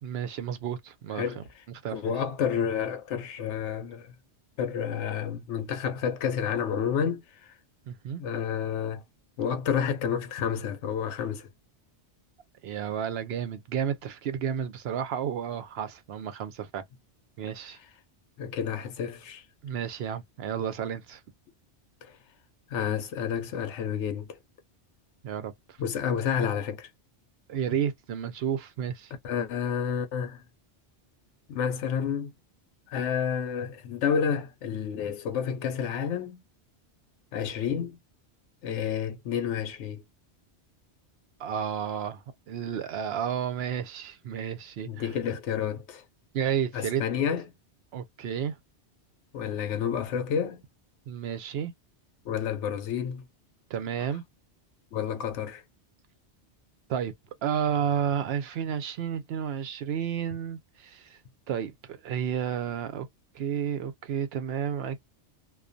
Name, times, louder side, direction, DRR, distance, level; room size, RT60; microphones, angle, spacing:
voice 1, 0.0-1.4 1.8-2.0 7.9-8.2 12.6-16.8 17.4-17.8 19.6-21.2 25.2-25.8 27.5-29.1 41.4-45.1 46.3-47.0 47.9-48.6 51.1-51.7 53.7-54.2 56.9-57.1 57.4-61.2 61.5-63.1 63.3-65.0, right 8 dB, 65° right, 0.8 m, -31 dB
voice 2, 1.9-4.1 4.6-7.2 8.2-9.0 9.4-11.5 18.4-19.4 22.0-22.2 22.7-24.4 25.8-26.9 29.2-30.4 31.5-32.3 32.9-36.4 37.3-38.0 38.6-40.0 44.8-46.0 46.7-47.4 49.3-50.6 52.2-53.2 54.9-55.6, left 7 dB, 85° left, 0.9 m, -30 dB
2.4 x 2.2 x 2.5 m
omnidirectional pair, 1.2 m